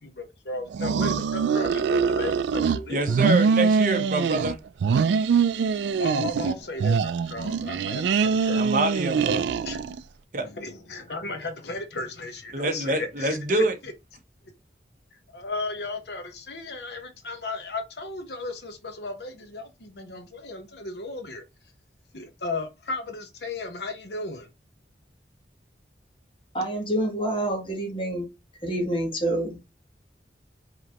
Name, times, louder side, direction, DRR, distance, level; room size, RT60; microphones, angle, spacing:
voice 1, 0.0-3.2 5.8-8.7 9.7-9.8 10.4-13.9 15.1-21.4 22.1-24.5, left 2 dB, 70° left, 1.0 m, -35 dB
sound 1, 0.7-2.8 3.1-4.5 4.8-6.5 6.8-10.0, right 5 dB, 80° right, 0.3 m, -23 dB
voice 2, 2.9-4.6 8.6-9.4 10.3-10.5 12.5-13.7, right 2 dB, 45° right, 0.8 m, -26 dB
voice 3, 26.5-28.3 28.6-29.7, right 1 dB, 30° left, 1.3 m, -27 dB
5.1 x 3.0 x 2.9 m
head